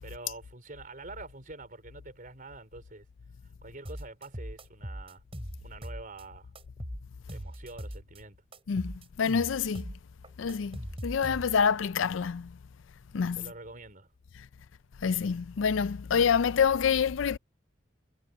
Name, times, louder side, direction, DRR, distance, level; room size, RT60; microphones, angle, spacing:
voice 1, 0.0-3.1 3.6-5.2 5.6-6.5 7.3-8.4 13.4-14.1, right 2 dB, 45° right, 4.2 m, -46 dB
sound 1, 3.9-6.2 6.6-8.2 8.5-11.7, equal, 30° right, 6.7 m, -40 dB
voice 2, 8.7-9.9 10.4-12.6 13.1-13.5 15.0-17.4, left 6 dB, 80° left, 0.4 m, -27 dB
head